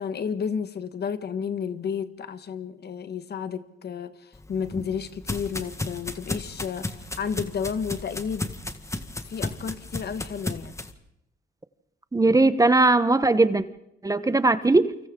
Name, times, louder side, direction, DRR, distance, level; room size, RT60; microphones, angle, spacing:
voice 1, 0.0-8.5 9.3-10.8, left 6 dB, 55° left, 11 dB, 1.5 m, -32 dB
sound 1, 4.3-10.9, left 2 dB, 15° left, 1.7 m, -34 dB
voice 2, 12.1-13.6 14.0-14.9, right 2 dB, 15° right, 13 dB, 1.0 m, -19 dB
28.5 x 25.0 x 3.8 m, 0.83 s
cardioid pair, 90°, 20 cm